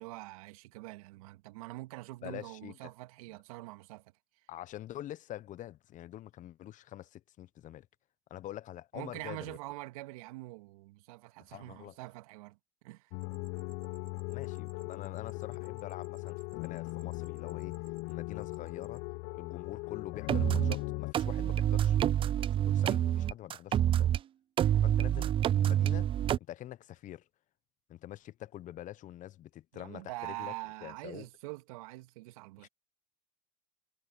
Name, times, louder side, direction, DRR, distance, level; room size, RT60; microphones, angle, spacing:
voice 1, 0.0-4.1 8.9-12.6 12.8-13.1 24.6-24.9 29.7-32.7, right 20 dB, 70° right, 2.1 m, -44 dB
voice 2, 2.2-2.8 4.5-7.9 8.3-9.6 11.5-12.0 14.3-19.0 19.3-24.1 24.8-26.1 26.4-27.2 27.9-30.5 30.8-31.3 32.6-32.7, left 13 dB, 45° left, 1.1 m, -45 dB
sound 1, 13.1-21.1, left 27 dB, 60° left, 0.7 m, -39 dB
sound 2, 13.2-19.0, right 9 dB, 90° right, 7.7 m, -65 dB
sound 3, 20.3-20.8 21.1-24.2 24.6-26.4, right 11 dB, 30° right, 0.4 m, -27 dB
hypercardioid pair, 90°, 19 cm